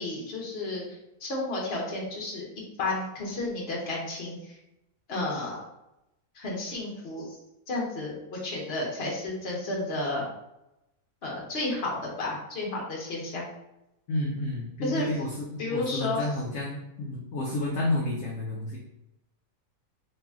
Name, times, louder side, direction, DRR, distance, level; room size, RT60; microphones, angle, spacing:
voice 1, 0.0-4.6 5.1-5.7 6.3-7.4 7.7-10.2 11.2-13.5 14.8-15.1 15.6-16.3, left 2 dB, 50° left, -3 dB, 1.2 m, -32 dB
voice 2, 14.1-18.8, left 2 dB, 65° left, -2 dB, 1.0 m, -31 dB
3.2 x 2.9 x 3.6 m, 0.88 s
omnidirectional pair, 1.5 m